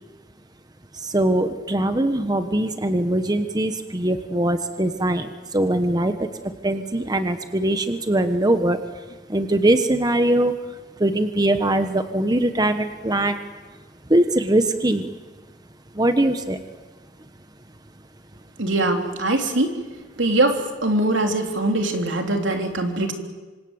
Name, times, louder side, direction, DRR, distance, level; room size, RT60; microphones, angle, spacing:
voice 1, 1.0-6.3 6.6-8.8 9.3-10.5 11.0-13.4 14.1-15.1 15.9-16.6, right 1 dB, 20° right, 8 dB, 1.1 m, -21 dB
voice 2, 18.6-19.7 20.2-23.1, right 2 dB, 75° right, 3 dB, 3.4 m, -22 dB
27.0 x 26.0 x 8.1 m, 1.3 s
head